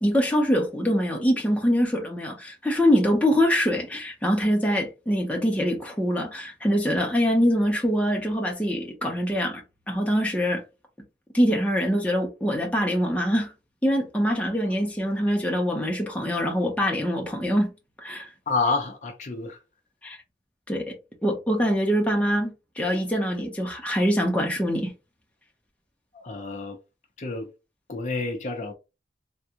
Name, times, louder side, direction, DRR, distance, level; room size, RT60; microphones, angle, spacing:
voice 1, 0.0-10.6 11.3-13.5 13.8-17.7 18.0-18.3 20.0-20.2 20.7-20.9 21.2-24.9, equal, 10° left, 0.7 m, -24 dB
voice 2, 18.5-19.6 26.2-26.8 27.2-27.5 27.9-28.7, left 3 dB, 45° left, 0.6 m, -28 dB
3.5 x 2.3 x 2.9 m
head